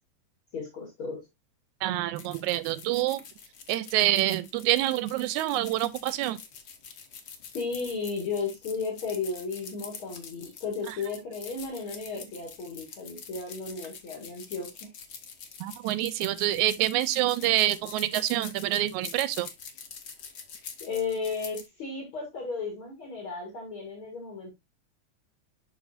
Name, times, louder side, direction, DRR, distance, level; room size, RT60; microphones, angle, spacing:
voice 1, 0.5-1.3 7.5-14.9 20.8-24.5, left 4 dB, 50° left, 2.4 m, -34 dB
voice 2, 1.8-3.2 3.7-6.4 15.6-19.5, right 14 dB, 80° right, 1.8 m, -26 dB
sound 1, 2.2-21.7, left 6 dB, 65° left, 1.0 m, -45 dB
11.5 x 3.9 x 2.5 m
omnidirectional pair, 3.5 m